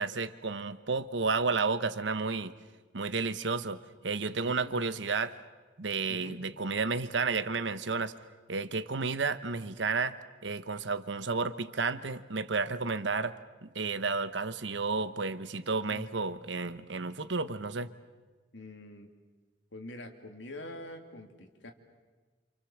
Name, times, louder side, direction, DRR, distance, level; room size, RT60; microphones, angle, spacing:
voice 1, 0.0-2.5 2.9-3.8 4.0-5.3 5.8-8.1 8.5-10.1 10.4-13.3 13.6-17.9, right 4 dB, 70° right, 12 dB, 1.0 m, -32 dB
voice 2, 4.4-4.8 6.1-6.4 15.9-16.1 18.5-19.1 19.7-21.7, left 1 dB, 75° left, 5 dB, 2.7 m, -45 dB
28.0 x 27.5 x 7.2 m, 1.3 s
head